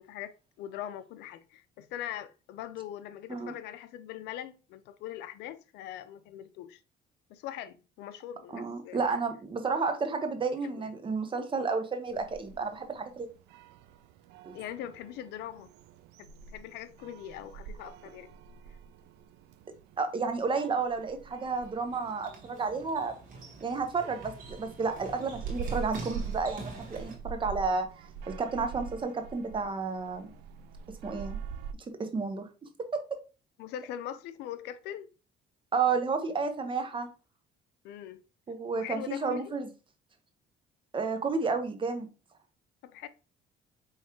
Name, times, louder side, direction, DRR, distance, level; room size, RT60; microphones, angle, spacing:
voice 1, 0.0-6.8 7.3-9.2 10.6-10.9 14.5-15.7 16.2-18.3 33.6-35.1 37.8-38.2 38.8-39.5 42.8-43.1, left 11 dB, 85° left, 0.5 m, -41 dB
voice 2, 8.5-13.3 14.4-14.5 20.0-23.1 23.6-27.9 28.3-30.3 31.0-31.4 32.0-32.5 32.9-33.0 35.7-37.1 38.5-39.7 40.9-42.1, right 4 dB, 30° right, 0.8 m, -31 dB
sound 1, 12.1-31.7, right 6 dB, 85° right, 0.4 m, -44 dB
sound 2, 21.6-27.2, right 3 dB, 55° right, 1.4 m, -46 dB
4.8 x 3.2 x 2.9 m
cardioid pair, 110°, 17 cm